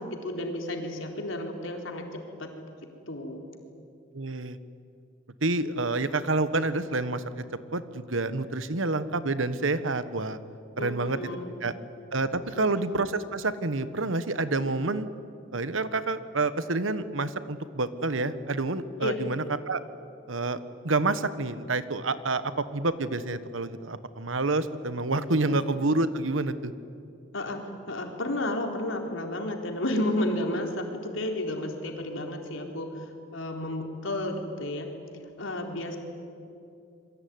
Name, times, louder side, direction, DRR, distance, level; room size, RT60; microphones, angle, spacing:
voice 1, 0.0-2.1 2.4-2.5 3.1-3.4 10.8-11.6 12.5-12.8 19.0-19.2 25.4-25.6 27.3-27.6 27.9-34.9 35.4-36.0, left 1 dB, 85° left, 2 dB, 4.1 m, -32 dB
voice 2, 4.1-4.6 5.4-7.4 7.7-10.4 10.8-11.2 11.6-11.7 12.1-15.1 15.5-19.8 20.3-20.6 20.8-26.7, right 2 dB, 85° right, 13 dB, 1.3 m, -28 dB
27.0 x 23.0 x 9.5 m, 2.6 s
head